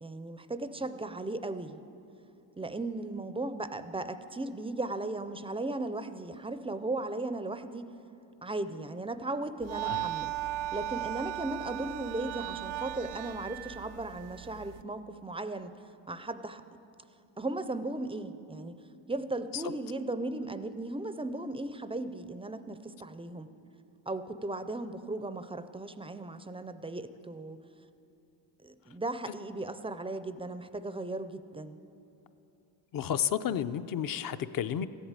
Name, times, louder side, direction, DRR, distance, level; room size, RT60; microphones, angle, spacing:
voice 1, 0.0-1.8 2.6-7.9 8.4-10.3 10.7-15.7 16.1-16.6 17.4-18.7 19.1-23.5 24.1-27.6 28.6-31.8, right 2 dB, 15° right, 11 dB, 0.4 m, -36 dB
sound 1, 9.6-14.8, right 15 dB, 75° right, 0.5 m, -37 dB
voice 2, 32.9-34.9, left 9 dB, 45° left, 13 dB, 0.6 m, -31 dB
14.0 x 8.2 x 8.9 m, 2.7 s
cardioid pair, 115°, 46 cm